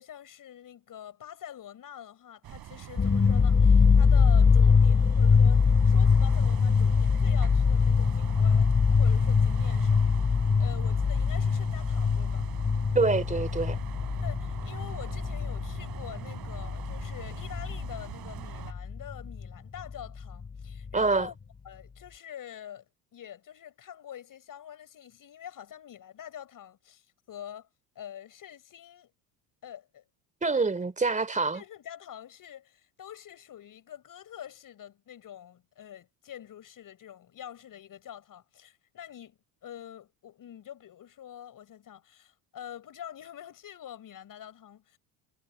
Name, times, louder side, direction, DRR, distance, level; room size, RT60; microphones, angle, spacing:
voice 1, 0.0-8.7 9.0-10.3 10.6-12.5 14.2-21.4 21.6-22.9 23.1-27.7 28.0-29.1 29.6-30.0 30.5-30.7 31.5-45.0, left 10 dB, 45° left, 7.1 m, -46 dB
sound 1, 2.4-18.7, right 12 dB, 50° right, 3.8 m, -44 dB
sound 2, 3.0-18.1 18.3-19.5 19.8-19.9 20.2-20.9, left 5 dB, 25° left, 2.6 m, -23 dB
voice 2, 12.9-13.8 20.9-21.3 30.4-31.6, right 3 dB, 15° right, 3.3 m, -26 dB
supercardioid pair, 90°, 45 cm